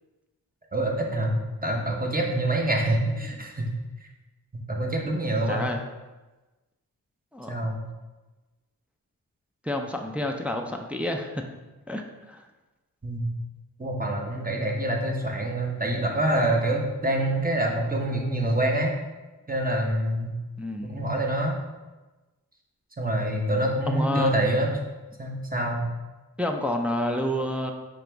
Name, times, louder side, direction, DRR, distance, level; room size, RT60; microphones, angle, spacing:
voice 1, 0.7-3.7 4.5-5.6 7.5-7.8 13.0-13.3 13.8-18.9 19.5-20.3 20.9-21.6 23.0-24.7 25.2-25.8, right 1 dB, 25° right, 0 dB, 0.9 m, -26 dB
voice 2, 5.5-5.8 7.3-7.7 9.6-11.4 11.9-12.5 20.6-21.0 23.9-24.3 26.4-27.7, left 1 dB, 5° right, 3 dB, 0.4 m, -29 dB
5.1 x 3.0 x 3.4 m, 1.2 s
cardioid pair, 50°, 37 cm